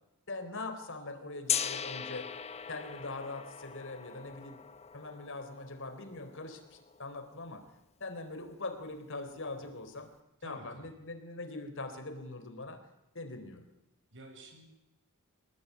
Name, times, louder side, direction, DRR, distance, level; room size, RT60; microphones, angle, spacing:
voice 1, 0.3-2.3 2.7-4.6 4.9-7.7 8.0-10.1 10.4-12.8 13.1-13.6, left 2 dB, 60° left, 9 dB, 4.1 m, -42 dB
Gong, 1.5-7.4, left 8 dB, 30° left, 1.0 m, -39 dB
voice 2, 10.4-10.8 14.1-14.6, right 1 dB, 60° right, 4 dB, 7.8 m, -51 dB
26.0 x 19.5 x 9.8 m, 0.89 s
head